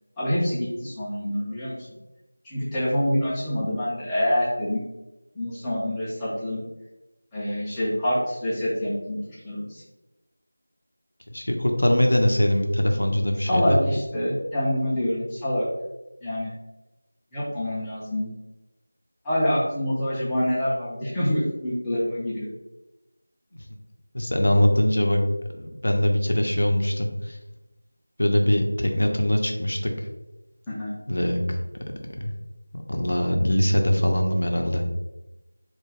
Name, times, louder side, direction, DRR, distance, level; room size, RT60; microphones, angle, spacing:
voice 1, 0.2-1.8 2.4-4.8 5.4-6.6 7.3-9.2 9.4-9.8 13.4-15.7 16.2-16.5 17.3-18.3 19.2-22.5 30.7-30.9, equal, 5° left, -10 dB, 0.4 m, -26 dB
voice 2, 11.3-13.8 24.1-25.2 25.5-27.4 28.2-29.9 31.1-31.6 32.2-32.3 32.7-34.8, left 1 dB, 70° left, 3 dB, 0.5 m, -22 dB
2.3 x 2.2 x 3.2 m, 1.0 s
figure-of-eight pair, 175°, 0 cm